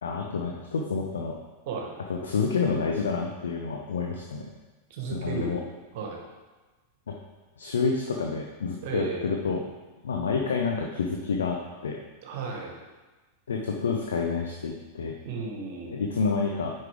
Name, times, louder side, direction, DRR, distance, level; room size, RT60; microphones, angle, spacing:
voice 1, 0.0-1.4 2.1-4.5 5.1-5.6 7.1-7.2 7.6-9.6 10.0-12.0 13.5-15.2 15.9-16.7, left 5 dB, 65° left, 1 dB, 0.7 m, -28 dB
voice 2, 4.9-5.5 5.9-6.2 8.8-9.2 12.2-12.7 15.2-16.0, right 4 dB, 50° right, 0 dB, 1.5 m, -34 dB
9.1 x 5.5 x 3.6 m, 1.2 s
figure-of-eight pair, 90°, 0 cm